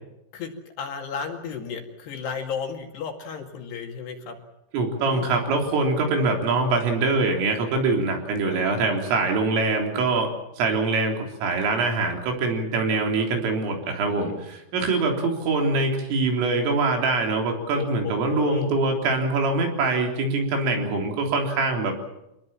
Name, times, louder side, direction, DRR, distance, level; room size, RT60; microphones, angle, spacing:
voice 1, 0.3-4.4 5.1-5.4 8.5-8.6 17.7-18.8, left 6 dB, 60° left, 3 dB, 4.1 m, -34 dB
voice 2, 4.7-21.9, right 3 dB, 80° right, 2 dB, 6.3 m, -24 dB
26.0 x 19.5 x 7.5 m, 0.88 s
omnidirectional pair, 5.7 m